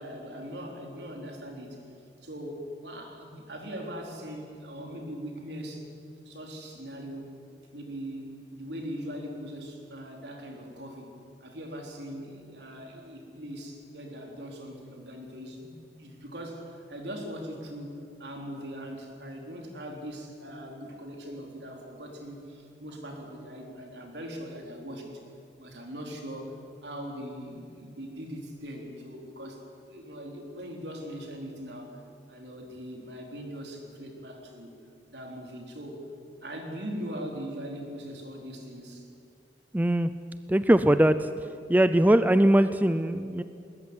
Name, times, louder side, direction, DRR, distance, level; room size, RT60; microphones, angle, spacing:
voice 1, 0.0-1.8 2.2-5.9 6.3-7.3 7.7-11.1 11.4-25.2 25.6-26.5 26.8-29.6 29.9-32.0 32.3-34.8 35.1-36.1 36.4-39.1, equal, 70° right, 2 dB, 4.0 m, -40 dB
voice 2, 39.7-40.1 40.5-41.3 41.7-43.4, right 1 dB, 10° right, 12 dB, 0.5 m, -21 dB
20.0 x 20.0 x 9.8 m, 2.5 s
head